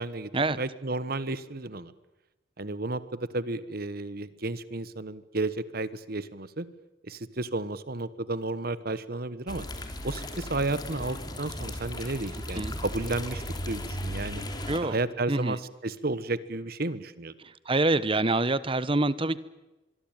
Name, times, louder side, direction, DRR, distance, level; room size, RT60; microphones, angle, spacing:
voice 1, 0.0-1.9 2.6-6.7 7.0-9.7 10.0-14.4 14.8-17.3, right 2 dB, 50° right, 15 dB, 1.3 m, -32 dB
sound 1, 9.5-14.8, left 1 dB, 20° left, 3.3 m, -36 dB
voice 2, 17.7-19.4, right 2 dB, 30° right, 17 dB, 1.0 m, -25 dB
25.5 x 23.0 x 9.0 m, 1.1 s
head